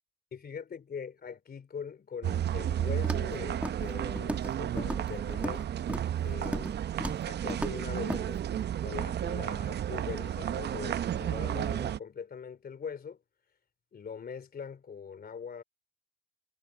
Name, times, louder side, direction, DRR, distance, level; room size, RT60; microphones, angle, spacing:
voice 1, 0.3-5.7 6.2-6.8 7.2-8.4 8.8-13.2 13.9-15.6, left 6 dB, 55° left, 3.2 m, -42 dB
sound 1, 2.2-12.0, right 10 dB, 65° right, 0.7 m, -32 dB
Walk footsteps, 3.0-3.3 3.6-3.9 4.2-4.5 4.8-5.6 5.9-6.1 6.4-6.7 7.0-7.2 7.5-7.8 8.1-8.2, right 1 dB, 5° right, 2.0 m, -35 dB
supercardioid pair, 55°, 19 cm